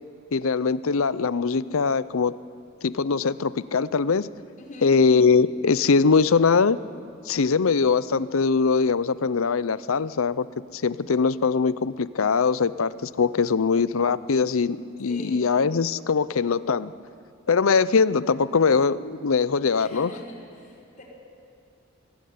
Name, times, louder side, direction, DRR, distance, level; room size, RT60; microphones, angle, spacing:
voice 1, 0.3-2.4 2.8-4.3 4.8-6.8 7.3-10.5 10.7-16.9 17.5-20.1, left 5 dB, 80° left, 16 dB, 0.6 m, -22 dB
voice 2, 4.6-5.0 15.0-15.4 19.8-21.0, left 1 dB, 40° left, -2 dB, 5.1 m, -42 dB
22.5 x 17.0 x 9.5 m, 2.5 s
head